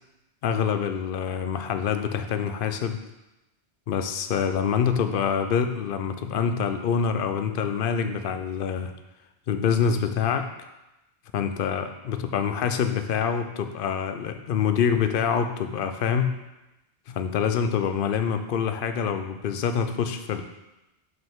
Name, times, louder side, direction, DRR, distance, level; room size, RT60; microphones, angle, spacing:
voice 1, 0.4-3.0 3.9-8.9 9.5-10.5 11.3-16.4 17.1-20.4, left 7 dB, 60° left, 8 dB, 0.6 m, -26 dB
6.0 x 5.4 x 3.6 m, 0.96 s
omnidirectional pair, 1.2 m